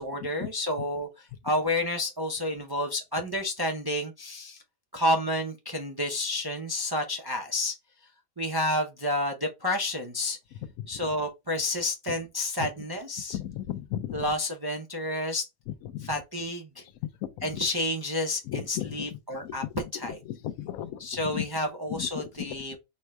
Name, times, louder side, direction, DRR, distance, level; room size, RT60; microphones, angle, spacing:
voice 1, 0.0-4.6 4.9-7.8 8.4-10.4 10.9-13.4 14.1-15.5 16.0-16.8 17.4-19.6 19.9-20.2 21.0-22.8, left 1 dB, 40° right, 0.3 m, -30 dB
voice 2, 13.3-14.2 15.9-16.1 17.4-17.5 18.5-19.0 19.4-19.5 20.4-21.0 21.3-21.4 21.9-22.1, left 12 dB, 85° left, 1.0 m, -34 dB
4.4 x 2.1 x 4.5 m
omnidirectional pair, 1.4 m